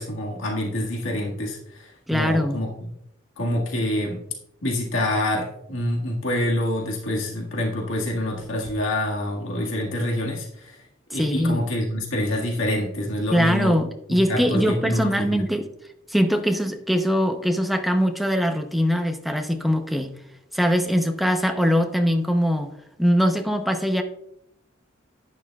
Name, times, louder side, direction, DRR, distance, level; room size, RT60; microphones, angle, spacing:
voice 1, 0.0-2.9 3.4-4.2 4.6-10.8 11.1-13.8 14.1-15.4, left 1 dB, 80° left, -1 dB, 1.8 m, -26 dB
voice 2, 2.1-2.6 11.2-11.6 13.3-15.7 16.1-20.1 20.5-24.0, equal, ahead, 4 dB, 0.7 m, -22 dB
11.0 x 9.9 x 2.3 m, 0.78 s
head